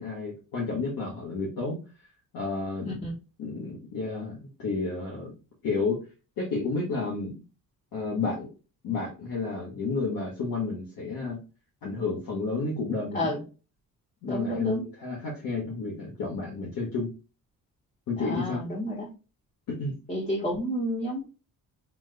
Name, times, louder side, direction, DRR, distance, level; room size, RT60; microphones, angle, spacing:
voice 1, 0.0-1.8 2.3-2.9 3.4-5.3 5.6-6.0 6.4-7.4 7.9-8.5 8.8-11.4 11.8-13.3 14.2-17.1 18.1-18.6 19.7-19.9, left 3 dB, 70° left, -4 dB, 1.6 m, -31 dB
voice 2, 14.3-14.8 18.2-19.1 20.1-21.2, equal, 25° left, -7 dB, 1.5 m, -30 dB
5.9 x 3.1 x 2.2 m, 0.33 s
cardioid pair, 175°, 35 cm